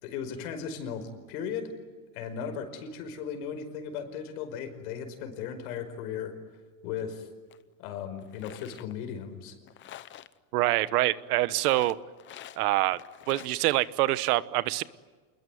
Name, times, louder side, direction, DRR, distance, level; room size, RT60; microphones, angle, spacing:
voice 1, 0.0-1.7 2.1-6.3 6.8-7.3 7.8-9.6, left 7 dB, 70° left, 8 dB, 5.3 m, -36 dB
sound 1, 7.5-7.6 8.2-8.9 9.7-10.3 11.5-12.6 12.9-13.6, left 12 dB, 25° left, 0.8 m, -46 dB
voice 2, 10.5-12.0 12.6-13.0 13.3-14.8, right 17 dB, 80° right, 16 dB, 1.2 m, -25 dB
28.0 x 21.5 x 9.4 m, 1.4 s
supercardioid pair, 150°, 46 cm